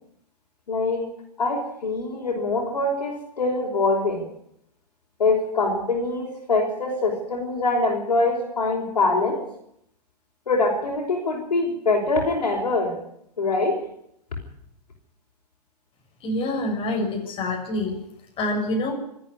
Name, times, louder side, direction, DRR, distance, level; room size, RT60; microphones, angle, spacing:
voice 1, 0.7-1.1 1.4-4.3 5.2-9.4 10.5-13.0 13.4-13.8, left 3 dB, 75° left, -2 dB, 5.5 m, -24 dB
voice 2, 16.2-17.9 18.4-18.9, left 1 dB, 25° left, -1 dB, 6.5 m, -26 dB
26.5 x 10.0 x 9.8 m, 0.75 s
hypercardioid pair, 115°, 21 cm